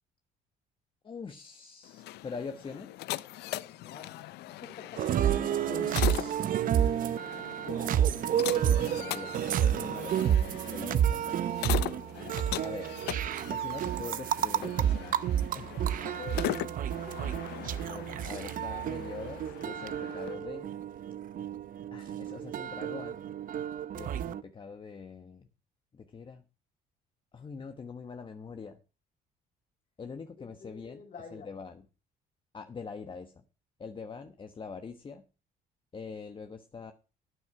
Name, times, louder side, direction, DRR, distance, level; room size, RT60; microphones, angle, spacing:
voice 1, 1.0-2.9 5.7-6.6 7.7-11.4 12.6-13.0 13.5-15.8 17.9-20.7 21.9-23.2 23.9-25.5 25.9-26.4 27.3-28.8 30.0-31.0 31.3-31.8 32.5-33.4 33.8-35.2 35.9-36.9, left 5 dB, 30° left, 8 dB, 1.2 m, -43 dB
sound 1, 1.8-20.3, left 16 dB, 80° left, 0.6 m, -40 dB
voice 2, 3.6-5.4 16.0-17.1 30.4-31.5, left 5 dB, 50° left, 5 dB, 4.3 m, -48 dB
sound 2, 5.0-24.4, right 10 dB, 55° right, 0.8 m, -30 dB
12.5 x 9.6 x 4.8 m, 0.32 s
cardioid pair, 110°, 17 cm